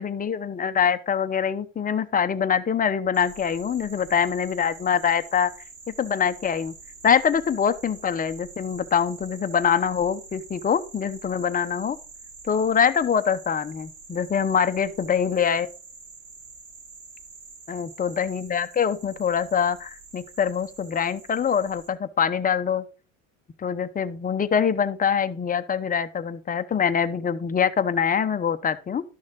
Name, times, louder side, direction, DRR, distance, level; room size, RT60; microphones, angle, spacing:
voice 1, 0.0-5.5 5.9-6.7 7.0-12.0 12.4-15.7 17.7-22.9 23.6-29.0, left 7 dB, 20° left, 0.8 m, -24 dB
sound 1, 3.1-21.9, right 4 dB, 65° right, 4.1 m, -46 dB
12.0 x 6.3 x 3.8 m
supercardioid pair, 105°, 42 cm